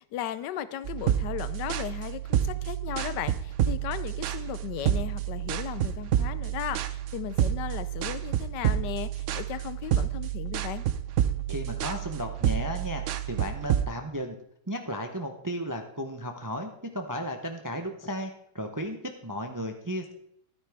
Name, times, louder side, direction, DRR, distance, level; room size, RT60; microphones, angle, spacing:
voice 1, 0.0-10.8, left 11 dB, 90° left, 14 dB, 1.3 m, -36 dB
sound 1, 0.8-13.9, right 11 dB, 70° right, 0.7 m, -29 dB
voice 2, 11.5-13.0 13.3-14.4 14.7-19.0 19.2-20.1, equal, 25° right, 5 dB, 0.4 m, -34 dB
12.5 x 9.6 x 3.5 m, 0.71 s
omnidirectional pair, 1.8 m